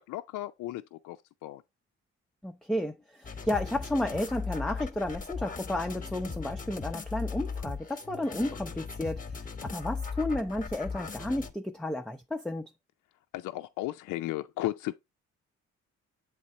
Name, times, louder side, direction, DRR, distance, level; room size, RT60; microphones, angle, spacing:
voice 1, 0.1-1.6 13.3-14.9, left 16 dB, 85° left, 0.5 m, -35 dB
voice 2, 2.4-9.2 9.6-12.7, left 1 dB, ahead, 0.5 m, -32 dB
sound 1, 3.2-11.5, left 5 dB, 25° left, 1.0 m, -38 dB
7.7 x 3.6 x 4.0 m
cardioid pair, 90°, 30 cm